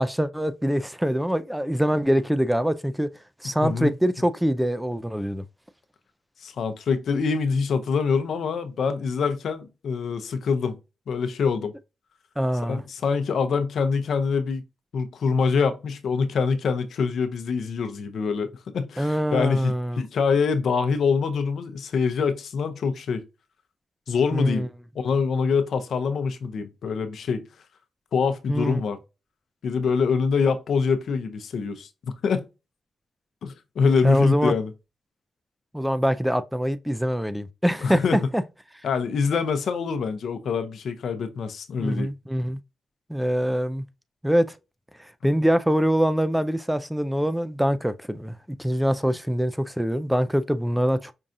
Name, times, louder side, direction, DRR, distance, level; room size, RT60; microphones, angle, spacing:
voice 1, 0.0-3.1 3.4-5.4 12.4-12.8 19.0-20.0 24.3-24.7 28.5-28.8 34.0-34.5 35.7-38.4 41.8-42.6 43.1-43.8 44.2-44.5 45.2-51.1, equal, 5° right, 0.3 m, -24 dB
voice 2, 3.6-3.9 6.4-10.8 11.1-11.7 12.7-14.6 14.9-23.2 24.1-24.7 24.9-27.4 28.1-29.0 29.6-32.4 33.4-34.7 37.8-38.2 38.8-42.1 49.1-49.2, left 5 dB, 75° left, 0.6 m, -25 dB
5.4 x 2.3 x 2.6 m
cardioid pair, 85°, 0 cm